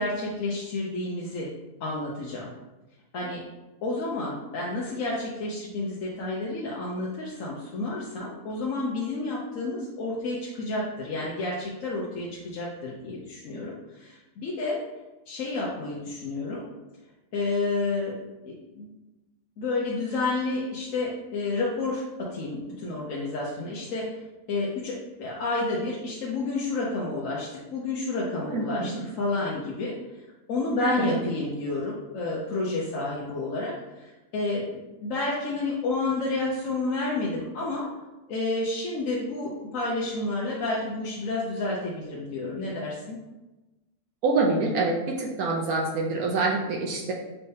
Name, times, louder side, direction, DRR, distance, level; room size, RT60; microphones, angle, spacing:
voice 1, 0.0-1.5 1.8-2.5 3.1-3.4 3.8-14.8 15.3-16.7 17.3-18.2 18.4-18.9 19.6-24.2 24.5-30.0 30.5-37.9 38.3-43.2, left 2 dB, 65° left, -4 dB, 1.0 m, -30 dB
voice 2, 28.5-29.0 30.8-31.2 44.2-47.1, right 3 dB, 70° right, -1 dB, 1.1 m, -26 dB
5.5 x 3.3 x 2.7 m, 1.1 s
omnidirectional pair, 1.6 m